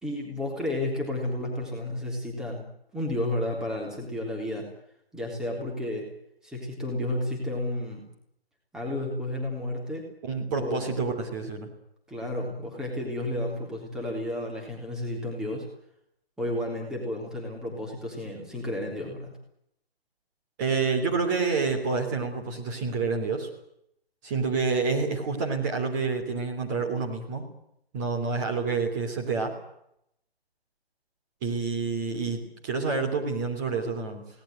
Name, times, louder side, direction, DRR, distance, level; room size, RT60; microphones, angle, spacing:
voice 1, 0.0-4.7 5.1-6.1 6.4-8.1 8.7-10.1 10.6-11.0 12.1-15.7 16.4-19.4, left 1 dB, ahead, -1 dB, 3.5 m, -32 dB
voice 2, 10.2-11.7 20.6-23.5 24.2-27.4 27.9-29.5 31.4-34.3, right 4 dB, 20° right, 2 dB, 3.2 m, -28 dB
22.5 x 19.0 x 9.2 m, 0.75 s
figure-of-eight pair, 145°, 31 cm